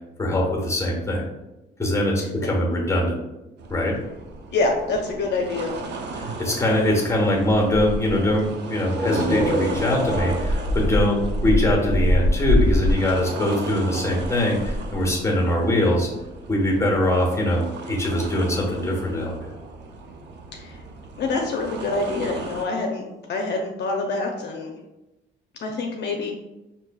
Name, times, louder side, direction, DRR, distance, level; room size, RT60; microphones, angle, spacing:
voice 1, 0.2-1.2 1.8-3.2 3.7-4.0 6.1-16.1 16.5-19.5, left 1 dB, 15° left, -1 dB, 1.0 m, -22 dB
sound 1, 3.6-22.6, equal, 60° right, 0.6 m, -29 dB
voice 2, 4.5-5.7 20.5-20.8 21.2-24.7 25.6-26.3, left 3 dB, 60° left, 1 dB, 0.5 m, -26 dB
sound 2, 8.8-12.4, equal, 20° right, 1.1 m, -28 dB
4.6 x 2.7 x 2.3 m, 0.99 s
cardioid pair, 90°, 20 cm